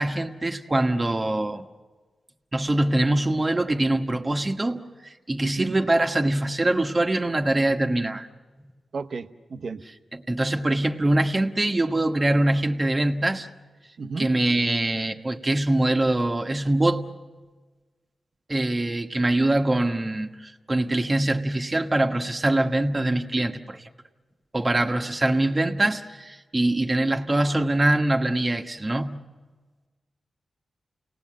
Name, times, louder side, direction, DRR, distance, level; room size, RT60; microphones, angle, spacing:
voice 1, 0.0-1.6 2.5-8.3 10.1-13.5 14.2-17.1 18.5-23.8 24.5-29.2, right 1 dB, 30° right, 1.4 m, -23 dB
voice 2, 5.4-5.7 8.9-9.8 14.0-14.3, right 4 dB, 70° right, 0.9 m, -33 dB
29.0 x 18.5 x 7.5 m
cardioid pair, 50°, 0 cm